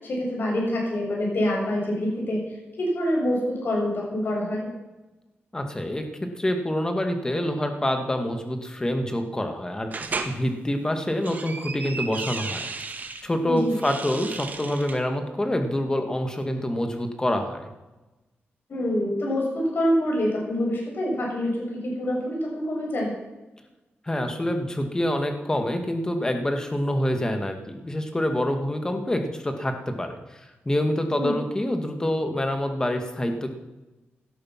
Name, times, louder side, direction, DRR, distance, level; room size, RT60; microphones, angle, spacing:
voice 1, 0.0-4.7 13.5-13.7 18.7-23.1 31.1-31.3, equal, 60° left, -2 dB, 7.1 m, -26 dB
voice 2, 5.5-6.0 6.4-12.7 13.2-17.7 24.0-33.5, left 1 dB, 15° left, 5 dB, 2.1 m, -26 dB
sound 1, 9.9-10.3 11.0-13.2 13.7-15.0, right 4 dB, 45° right, 1.7 m, -34 dB
17.0 x 12.0 x 6.0 m, 1.1 s
wide cardioid pair, 115°, 4 cm